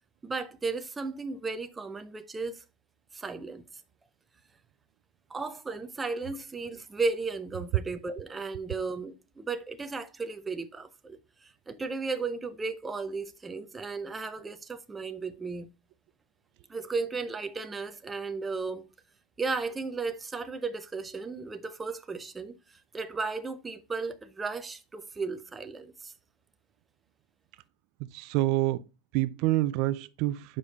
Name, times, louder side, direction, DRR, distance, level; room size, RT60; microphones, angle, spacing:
voice 1, 0.2-2.6 3.1-3.6 5.3-15.7 16.7-18.9 19.4-22.5 22.9-26.1, right 4 dB, 10° right, 0.6 m, -35 dB
voice 2, 28.1-28.8 29.1-30.6, right 16 dB, 55° right, 0.4 m, -27 dB
6.8 x 5.0 x 4.0 m
supercardioid pair, 155°, 0 cm